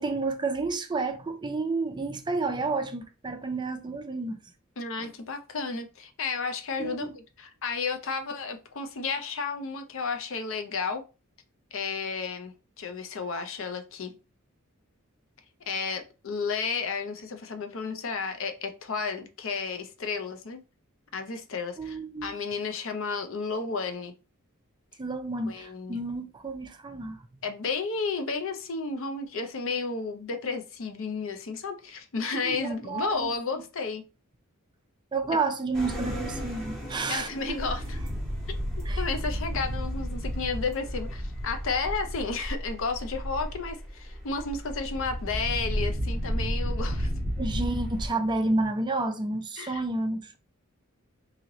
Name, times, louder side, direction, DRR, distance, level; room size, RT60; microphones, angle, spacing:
voice 1, 0.0-4.4 5.0-5.1 6.8-7.0 21.8-22.3 25.0-27.2 32.4-33.3 35.1-37.6 38.9-39.0 47.4-50.4, right 3 dB, 20° right, 0.4 m, -30 dB
voice 2, 4.8-11.0 11.7-14.1 15.7-20.6 21.1-24.1 25.5-26.0 27.4-34.0 37.1-38.0 38.5-38.6 39.0-47.1 49.6-49.8, left 4 dB, 65° left, 0.6 m, -32 dB
sound 1, 35.7-48.1, equal, ahead, 1.2 m, -32 dB
3.1 x 2.8 x 3.8 m
head